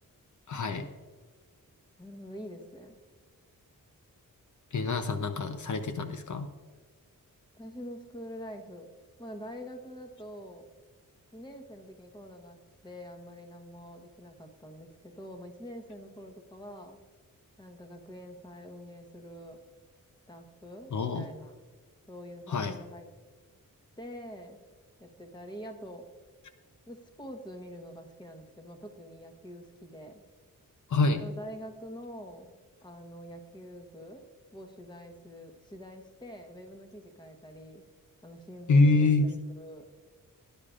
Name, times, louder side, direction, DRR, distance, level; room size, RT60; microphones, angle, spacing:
voice 1, 0.5-0.9 4.7-6.5 20.9-21.3 22.5-22.7 30.9-31.2 38.7-39.3, left 3 dB, 60° left, 7 dB, 0.8 m, -26 dB
voice 2, 2.0-3.0 7.6-8.9 9.2-10.7 11.3-17.0 17.6-19.6 20.3-21.5 22.1-23.1 24.0-24.6 25.0-26.1 26.9-30.2 31.2-32.5 32.8-34.2 34.5-37.8 38.2-38.9 39.2-39.9, equal, 15° left, 5 dB, 1.1 m, -45 dB
18.0 x 10.5 x 2.5 m, 1.4 s
wide cardioid pair, 145°, 34 cm